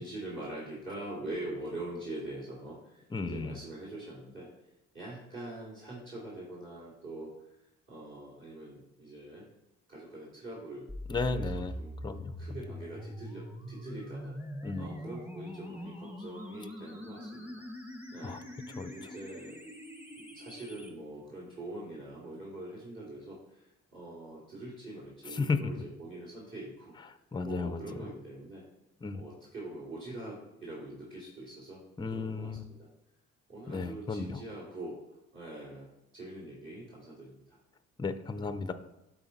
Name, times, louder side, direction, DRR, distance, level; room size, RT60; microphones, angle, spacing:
voice 1, 0.0-4.5 4.9-9.5 9.9-11.9 12.4-14.3 14.8-17.5 18.1-18.4 18.9-19.6 20.2-26.9 27.4-28.6 29.1-31.8 32.1-32.9 33.5-35.0 35.3-35.9 36.1-37.6, right 1 dB, 40° right, -7 dB, 2.9 m, -43 dB
voice 2, 3.1-3.6 11.1-11.7 12.0-12.3 14.6-14.9 18.2-18.4 18.7-19.1 25.3-25.7 27.1-28.1 29.0-29.2 32.0-32.7 33.7-34.4 38.0-38.7, left 4 dB, 15° left, 10 dB, 0.6 m, -34 dB
sound 1, 10.9-20.9, equal, 5° right, 1.2 m, -43 dB
12.0 x 4.2 x 4.1 m, 0.91 s
cardioid pair, 90°, 30 cm